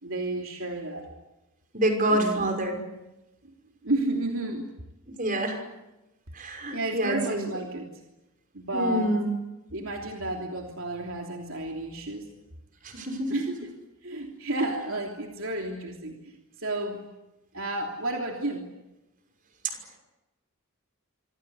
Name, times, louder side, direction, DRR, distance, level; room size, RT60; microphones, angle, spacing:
voice 1, 0.0-1.1 2.1-2.5 3.4-3.5 3.8-4.7 6.7-7.9 8.5-9.1 9.7-12.3 13.3-13.7 14.0-17.0 17.5-18.7, right 2 dB, 65° right, 1 dB, 3.2 m, -31 dB
voice 2, 1.7-2.8 5.2-5.6 6.3-7.5 8.7-9.3 12.8-13.4, right 1 dB, 40° right, 5 dB, 5.7 m, -27 dB
26.5 x 25.5 x 8.2 m, 0.98 s
head